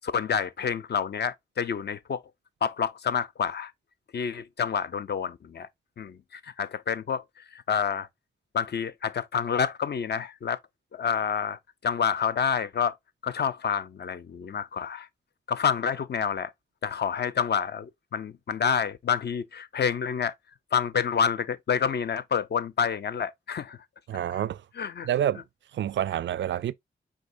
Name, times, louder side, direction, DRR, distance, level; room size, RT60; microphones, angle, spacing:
voice 1, 0.0-2.2 2.6-3.7 4.1-5.7 6.0-7.2 7.7-8.1 8.5-10.6 10.9-13.0 13.2-15.1 15.5-16.5 16.8-20.3 20.7-23.8 24.8-25.1, left 7 dB, 60° left, 0.6 m, -28 dB
voice 2, 24.1-24.6 25.0-25.4 25.7-26.7, right 10 dB, 70° right, 0.4 m, -28 dB
5.2 x 3.7 x 2.6 m
cardioid pair, 50°, 20 cm